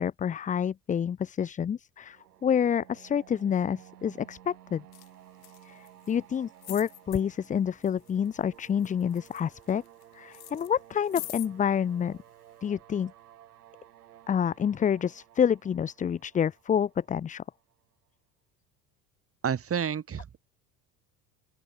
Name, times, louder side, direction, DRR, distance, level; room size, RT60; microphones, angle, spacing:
voice 1, 0.0-4.8 5.6-9.8 10.1-12.2 12.6-13.1 14.3-17.4, left 8 dB, 15° left, 0.6 m, -28 dB
sound 1, 2.0-17.8, right 12 dB, 70° right, 5.3 m, -55 dB
sound 2, 4.9-5.1 5.4-6.1 6.6-7.2 7.8-8.3 8.6-10.0 10.3-11.5 12.3-12.4, left 18 dB, 50° left, 4.2 m, -43 dB
voice 2, 19.4-20.4, right 8 dB, 30° right, 2.9 m, -30 dB
open air
figure-of-eight pair, 65°, 47 cm